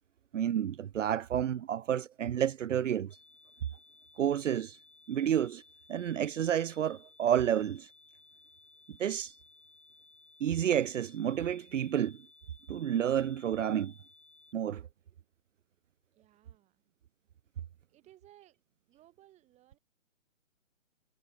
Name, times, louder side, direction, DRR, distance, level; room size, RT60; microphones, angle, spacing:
voice 1, 0.3-3.1 4.2-4.8 5.1-5.6 5.9-7.9 9.0-9.3 10.4-12.2 12.7-13.9 14.5-14.8, right 10 dB, 75° right, 0.6 m, -30 dB
sound 1, 3.1-14.5, left 3 dB, 5° left, 1.2 m, -60 dB
voice 2, 16.1-16.9 17.9-18.6 18.9-19.8, right 14 dB, 20° right, 6.0 m, -61 dB
figure-of-eight pair, 140°, 38 cm